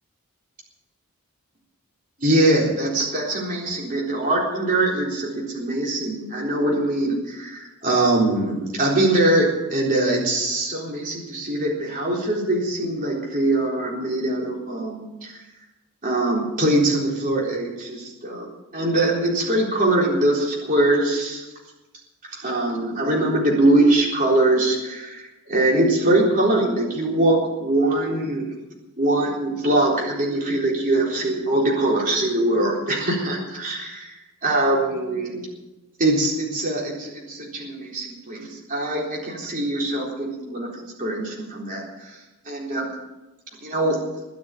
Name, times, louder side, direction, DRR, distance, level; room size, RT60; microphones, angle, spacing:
voice 1, 2.2-15.4 16.0-18.5 18.7-21.4 22.3-28.6 29.0-35.4 36.0-42.2 42.5-42.9 43.6-44.0, right 1 dB, 40° right, -3 dB, 3.9 m, -22 dB
21.5 x 7.2 x 9.1 m, 1.0 s
head